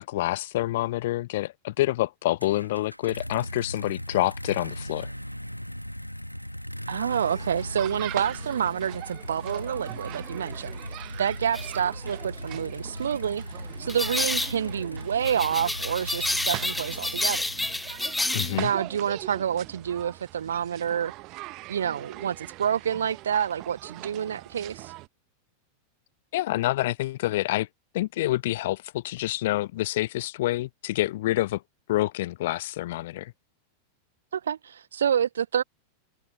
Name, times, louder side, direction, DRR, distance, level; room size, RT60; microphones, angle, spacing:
voice 1, 0.0-5.1 18.3-18.7 26.3-27.7 27.9-31.6 31.9-33.3, left 16 dB, 55° left, 0.4 m, -27 dB
sound 1, 2.4-18.4, equal, 90° left, 1.6 m, -38 dB
voice 2, 6.9-13.4 13.8-17.4 18.6-21.1 21.7-24.9 34.3-35.6, right 8 dB, 65° right, 1.0 m, -28 dB
sound 2, 7.1-25.1, right 21 dB, 40° right, 1.2 m, -42 dB
sound 3, 11.5-11.7 13.9-14.6 15.2-18.6, left 2 dB, 5° left, 0.7 m, -29 dB
figure-of-eight pair, 90°, 0 cm